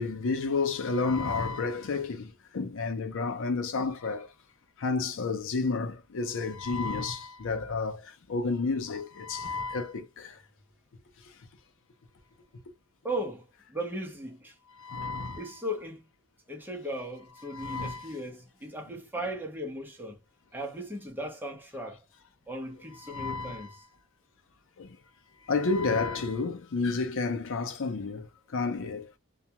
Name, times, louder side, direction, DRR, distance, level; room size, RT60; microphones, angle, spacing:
voice 1, 0.0-4.3 4.8-10.4 14.8-15.6 17.4-18.2 23.0-23.8 24.8-25.0 25.5-28.3 28.5-29.1, left 4 dB, 60° left, 0.5 m, -31 dB
voice 2, 13.0-13.4 13.7-14.5 15.4-16.1 16.5-20.2 20.5-22.0 22.5-23.8, right 1 dB, 10° right, 0.8 m, -37 dB
2.3 x 2.2 x 2.8 m
head